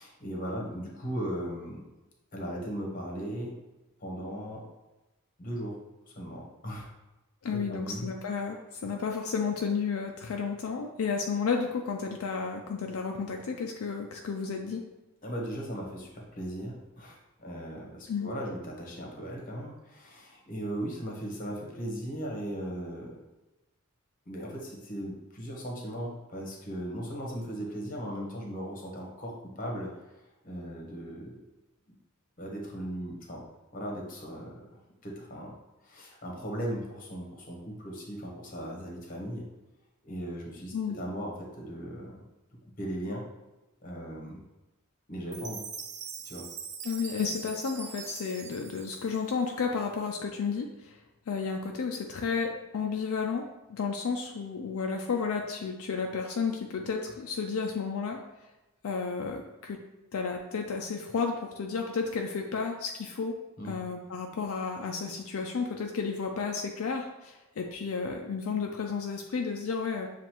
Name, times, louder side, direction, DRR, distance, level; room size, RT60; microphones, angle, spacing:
voice 1, 0.0-1.8 2.3-3.6 4.0-4.6 5.4-5.8 6.1-6.9 7.5-8.1 15.2-23.2 24.3-30.0 30.4-31.4 31.9-32.0 32.4-33.4 33.7-34.7 35.0-35.5 35.8-39.5 40.0-42.2 42.8-43.2 43.8-44.4 45.1-45.6 46.2-46.5 63.6-63.8, equal, 40° left, -1 dB, 1.0 m, -37 dB
voice 2, 7.4-14.8 18.1-18.3 40.7-41.0 46.8-51.0 51.3-58.2 58.8-59.8 60.1-63.4 63.6-70.1, left 5 dB, 75° left, 2 dB, 0.4 m, -32 dB
Chime, 45.3-49.7, right 6 dB, 30° right, 0.3 m, -42 dB
7.2 x 2.5 x 2.9 m, 1.0 s
head